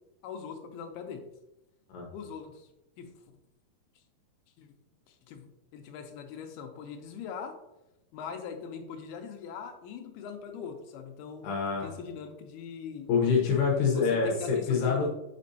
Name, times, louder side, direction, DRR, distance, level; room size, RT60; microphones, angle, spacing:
voice 1, 0.2-1.2 2.1-2.7 3.0-3.1 4.6-4.7 5.1-7.6 8.1-11.4 11.8-13.1 13.6-15.1, left 6 dB, 85° left, 5 dB, 2.6 m, -41 dB
voice 2, 11.4-11.9 13.1-15.1, left 5 dB, 70° left, -1 dB, 2.4 m, -26 dB
7.3 x 5.2 x 2.7 m, 0.92 s
omnidirectional pair, 4.5 m